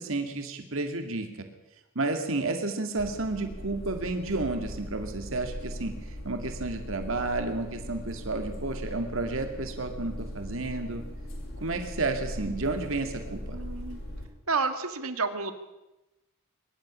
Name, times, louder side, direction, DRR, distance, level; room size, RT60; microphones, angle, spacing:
voice 1, 0.0-1.5 2.0-5.9 6.2-11.0 11.6-13.6, right 2 dB, 65° right, 5 dB, 2.3 m, -31 dB
sound 1, 3.0-14.3, equal, 60° left, 4.2 m, -39 dB
voice 2, 13.5-14.0 14.5-15.5, right 4 dB, 80° right, 9 dB, 1.9 m, -30 dB
22.5 x 11.5 x 9.9 m, 1.0 s
head